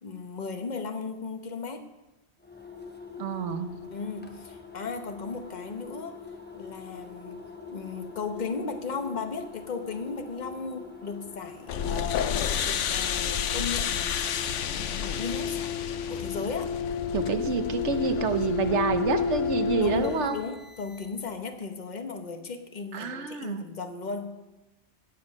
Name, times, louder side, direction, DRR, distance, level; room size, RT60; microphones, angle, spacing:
voice 1, 0.0-1.9 3.9-6.2 6.5-7.4 7.7-14.4 14.7-15.7 16.1-16.8 19.8-24.5, left 4 dB, 40° left, 6 dB, 1.1 m, -36 dB
sound 1, 2.4-21.4, left 5 dB, 10° left, 0.9 m, -45 dB
voice 2, 3.2-3.7 17.1-20.4 22.9-23.6, right 6 dB, 75° right, 9 dB, 1.2 m, -28 dB
sound 2, 11.7-20.2, left 7 dB, 85° left, 1.0 m, -29 dB
17.5 x 7.1 x 5.3 m, 1.0 s
omnidirectional pair, 1.2 m